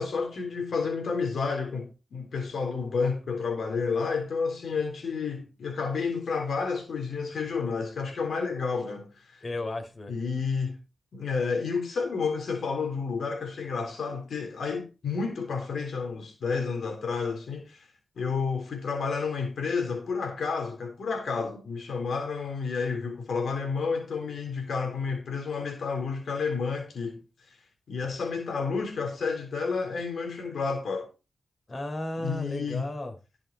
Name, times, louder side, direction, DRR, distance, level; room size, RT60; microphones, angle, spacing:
voice 1, 0.0-9.4 10.1-10.8 11.1-17.9 18.2-27.2 27.9-31.1 32.2-32.9, left 5 dB, 80° left, 3.5 m, -30 dB
voice 2, 9.4-10.1 31.7-33.1, left 1 dB, 40° left, 4.1 m, -34 dB
16.0 x 6.3 x 4.0 m
cardioid pair, 70°, 0 cm